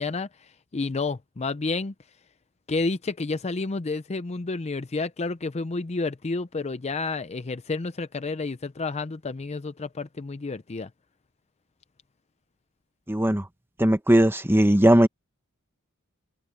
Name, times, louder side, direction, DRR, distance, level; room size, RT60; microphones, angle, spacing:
voice 1, 0.0-1.9 2.7-10.9, left 3 dB, 30° left, 0.5 m, -30 dB
voice 2, 13.1-13.5 13.8-15.1, right 1 dB, 10° right, 1.1 m, -18 dB
head